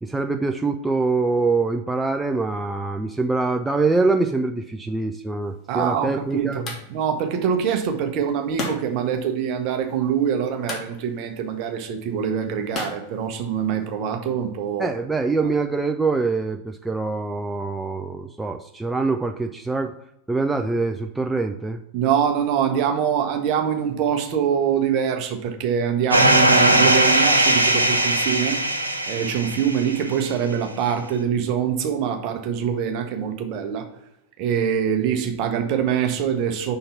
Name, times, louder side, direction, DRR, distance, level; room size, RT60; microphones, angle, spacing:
voice 1, 0.0-6.6 14.8-19.9 20.3-21.8, right 3 dB, 5° right, 4 dB, 0.3 m, -24 dB
sound 1, 5.4-14.0, left 2 dB, 30° left, 1.7 m, -39 dB
voice 2, 5.7-14.9 21.9-28.6 29.1-33.9 34.4-36.8, right 8 dB, 40° right, 5 dB, 0.9 m, -24 dB
sound 2, 26.1-30.1, right 1 dB, 85° right, 0.6 m, -19 dB
5.8 x 3.8 x 5.6 m, 0.83 s
figure-of-eight pair, 90°, 0 cm